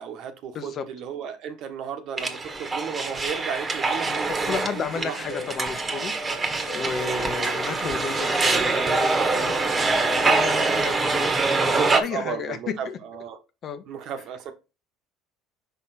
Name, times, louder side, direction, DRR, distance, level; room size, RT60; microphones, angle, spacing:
voice 1, 0.0-5.2 7.1-7.3 9.9-10.8 11.7-13.4 13.9-14.5, right 7 dB, 60° right, 1.3 m, -34 dB
voice 2, 0.5-0.9 4.0-9.6 10.2-12.6 12.8-13.0 13.6-13.8, left 6 dB, 50° left, 1.1 m, -33 dB
sound 1, 2.2-12.0, right 3 dB, 25° right, 1.4 m, -24 dB
sound 2, 4.4-11.7, left 7 dB, 70° left, 1.4 m, -43 dB
5.9 x 4.1 x 4.3 m
hypercardioid pair, 75°, 0 cm